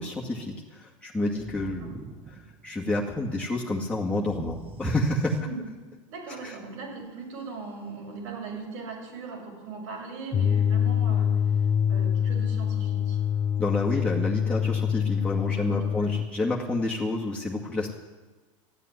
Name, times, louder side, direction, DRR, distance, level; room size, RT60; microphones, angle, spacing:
voice 1, 0.0-5.4 6.4-6.6 13.6-17.9, left 2 dB, 5° left, -4 dB, 2.1 m, -29 dB
sound 1, 1.4-3.1 4.2-5.9, right 5 dB, 35° right, 1.4 m, -45 dB
voice 2, 6.1-11.4 11.9-13.2 15.6-16.1, right 4 dB, 75° right, 0 dB, 6.4 m, -39 dB
sound 2, 10.3-16.3, left 8 dB, 30° left, 0.7 m, -25 dB
14.0 x 9.1 x 9.7 m, 1.3 s
hypercardioid pair, 95°, 17 cm